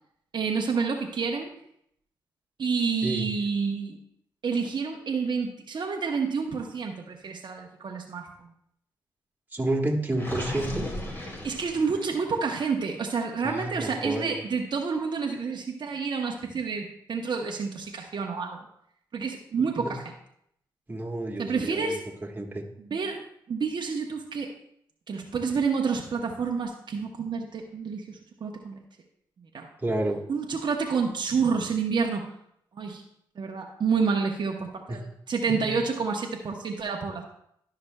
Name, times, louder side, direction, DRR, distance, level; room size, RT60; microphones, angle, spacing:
voice 1, 0.3-1.5 2.6-4.0 4.4-8.5 11.4-18.6 19.1-20.0 21.4-22.0 22.9-23.2 23.5-24.5 25.1-28.8 29.5-29.7 30.3-32.3 32.7-33.0 33.4-37.2, right 5 dB, 55° right, 1 dB, 0.8 m, -29 dB
voice 2, 9.5-10.9 13.4-14.4 19.8-19.9 20.9-21.9 22.2-22.6 29.8-30.2 34.9-35.0 35.6-35.7, right 1 dB, 20° right, 0 dB, 1.4 m, -30 dB
Gurgling, 10.1-12.3, left 1 dB, 25° left, 2.1 m, -36 dB
12.0 x 5.8 x 2.2 m, 0.73 s
supercardioid pair, 55°, 9 cm